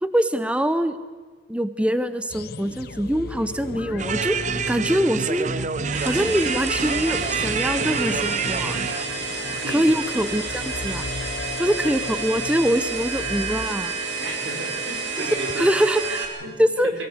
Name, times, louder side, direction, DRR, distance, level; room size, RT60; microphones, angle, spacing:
voice 1, 0.0-1.0 1.5-4.4 4.7-5.5 6.0-8.8 9.7-11.0 11.6-13.9 15.2-15.3 15.6-16.3 16.6-16.9, equal, 5° right, 11 dB, 0.8 m, -23 dB
sound 1, 2.3-13.7, left 3 dB, 55° left, 0.7 m, -36 dB
sound 2, 4.0-9.1, right 5 dB, 40° right, 0.6 m, -27 dB
sound 3, 5.9-16.3, right 4 dB, 65° right, 3.2 m, -30 dB
voice 2, 14.2-15.7 16.4-16.9, right 1 dB, 85° right, 1 dB, 4.6 m, -33 dB
22.0 x 16.0 x 8.1 m, 1.4 s
head